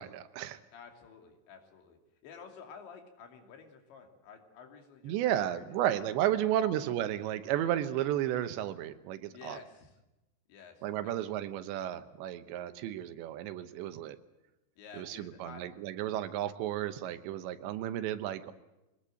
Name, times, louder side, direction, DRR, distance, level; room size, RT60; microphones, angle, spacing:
voice 1, 0.0-0.6 5.0-9.6 10.8-14.2 15.0-18.5, right 12 dB, 90° right, 11 dB, 3.3 m, -33 dB
voice 2, 0.7-6.0 6.3-6.7 9.3-10.0 10.5-11.6 14.8-15.7, left 6 dB, 90° left, 4 dB, 5.0 m, -52 dB
24.0 x 18.5 x 7.7 m, 0.98 s
omnidirectional pair, 5.0 m